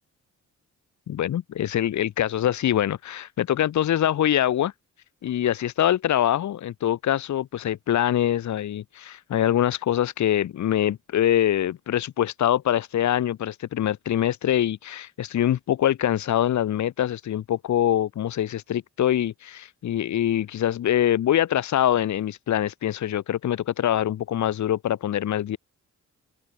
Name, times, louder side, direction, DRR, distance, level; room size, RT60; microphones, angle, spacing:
voice 1, 1.1-4.7 5.2-25.6, left 11 dB, 70° left, 0.9 m, -24 dB
open air
cardioid pair, 105°, 30 cm